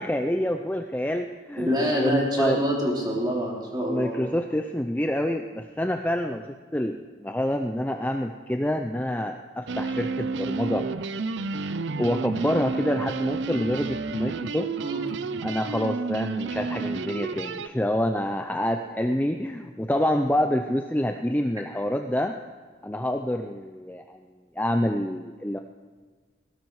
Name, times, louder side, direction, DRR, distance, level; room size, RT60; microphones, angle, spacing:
voice 1, 0.0-2.6 3.9-10.8 12.0-14.7 15.4-22.4 22.8-24.2 24.6-25.6, left 1 dB, 10° left, 5 dB, 0.5 m, -27 dB
voice 2, 1.6-4.2 14.8-15.0, equal, 20° right, -3 dB, 3.6 m, -26 dB
sound 1, 9.7-17.7, right 4 dB, 70° right, 0.5 m, -30 dB
18.0 x 16.5 x 4.8 m, 1.5 s
head